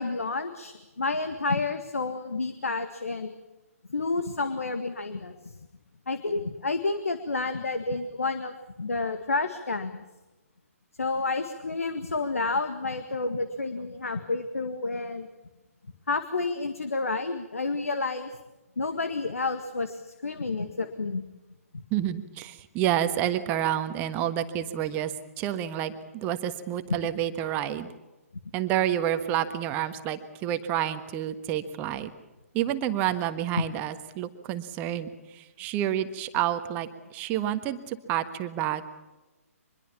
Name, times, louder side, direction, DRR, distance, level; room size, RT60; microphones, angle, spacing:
voice 1, 0.0-3.3 3.9-5.6 6.1-10.0 11.0-15.3 16.1-18.3 18.8-21.2, left 3 dB, 65° left, 9 dB, 1.9 m, -30 dB
voice 2, 21.9-27.9 28.5-32.1 32.5-38.9, right 11 dB, 20° right, 9 dB, 1.4 m, -29 dB
25.0 x 22.0 x 7.2 m, 1.1 s
figure-of-eight pair, 130°, 8 cm